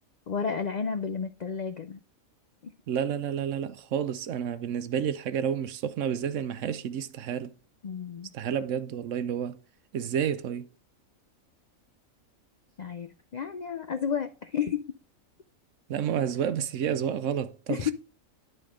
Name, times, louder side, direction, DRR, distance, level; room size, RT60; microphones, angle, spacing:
voice 1, 0.3-2.0 2.6-2.7 7.8-8.3 12.8-14.8 17.7-17.9, left 7 dB, 70° left, 0.4 m, -31 dB
voice 2, 2.9-7.5 8.3-9.6 9.9-10.7 15.9-17.9, right 8 dB, 70° right, 0.9 m, -30 dB
10.5 x 4.4 x 4.9 m
omnidirectional pair, 1.4 m